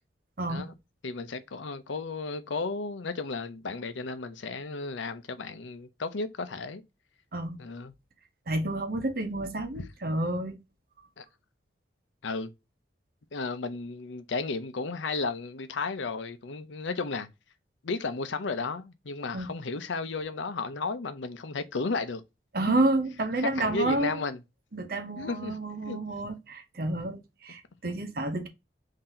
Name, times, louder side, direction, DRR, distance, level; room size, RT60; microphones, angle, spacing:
voice 1, 0.4-0.7 7.3-7.6 8.5-10.6 19.3-19.5 22.5-24.2 24.7-28.5, right 2 dB, 50° right, 0.8 m, -30 dB
voice 2, 1.0-6.8 7.6-7.9 9.8-9.9 11.2-11.3 12.2-12.5 13.3-17.3 17.8-22.2 22.7-22.8 23.4-24.4 25.2-25.6 25.8-26.0 27.8-28.0, left 3 dB, 85° left, 0.6 m, -34 dB
3.9 x 2.8 x 4.2 m
head